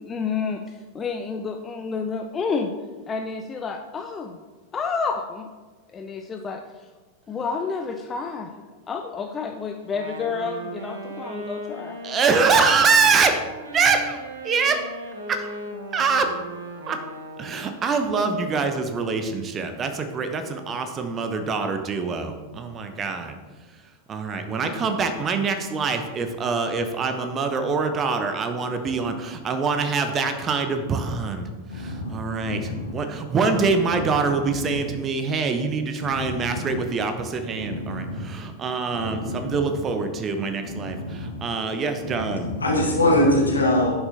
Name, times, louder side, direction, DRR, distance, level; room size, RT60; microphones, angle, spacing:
voice 1, 0.0-2.7 3.1-4.3 4.7-5.5 5.9-6.6 7.3-8.5 8.9-12.0, left 5 dB, 20° left, 4 dB, 0.5 m, -29 dB
Wind instrument woodwind instrument, 9.8-17.8, right 1 dB, 70° right, 1.1 m, -37 dB
voice 2, 12.0-13.4 13.7-14.9 15.3-15.5 15.9-16.3 16.9-17.0 17.4-23.4 24.1-31.5 31.7-42.5, right 4 dB, 25° right, 7 dB, 0.8 m, -24 dB
voice 3, 31.7-32.9 33.8-34.1 34.4-34.7 36.0-36.8 37.6-38.2 38.9-39.7 40.6-41.4 42.0-44.0, left 1 dB, 75° left, -1 dB, 1.7 m, -25 dB
10.5 x 6.7 x 2.8 m, 1.3 s
figure-of-eight pair, 90°, 0 cm